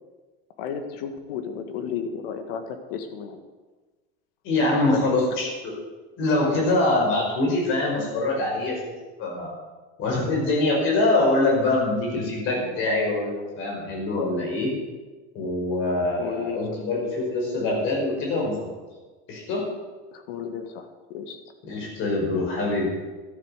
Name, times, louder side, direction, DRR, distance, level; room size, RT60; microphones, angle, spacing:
voice 1, 0.6-3.4 4.7-5.0 16.2-16.8 20.1-21.4, left 7 dB, 80° left, 7 dB, 2.0 m, -33 dB
voice 2, 4.4-5.7 6.2-8.9 9.2-9.5 10.0-14.7 15.3-18.5 19.3-19.6 21.7-22.9, left 2 dB, 45° left, -1 dB, 5.8 m, -24 dB
13.0 x 11.0 x 6.6 m, 1.3 s
cardioid pair, 165°, 29 cm